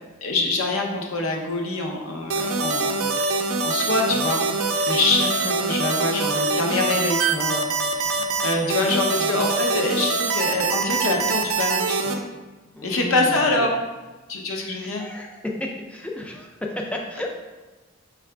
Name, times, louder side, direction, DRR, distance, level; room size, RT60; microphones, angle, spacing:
voice 1, 0.2-3.1 3.6-12.2 12.8-13.8 14.3-15.0, left 2 dB, 75° left, 1 dB, 0.7 m, -25 dB
sound 1, 2.3-12.1, right 3 dB, 80° right, 0.4 m, -24 dB
voice 2, 8.5-9.5 12.7-13.8 14.8-17.3, left 1 dB, 5° left, 0 dB, 0.3 m, -33 dB
5.6 x 2.4 x 3.3 m, 1.2 s
head